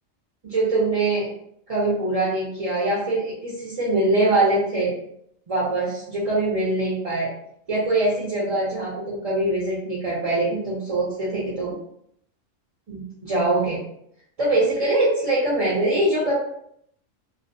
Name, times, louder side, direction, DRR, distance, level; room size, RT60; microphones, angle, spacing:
voice 1, 0.4-1.3 1.7-4.9 5.5-7.3 7.7-11.7 12.9-13.8 14.4-16.3, right 2 dB, 45° right, -7 dB, 0.4 m, -23 dB
2.5 x 2.1 x 2.6 m, 0.72 s
omnidirectional pair, 1.3 m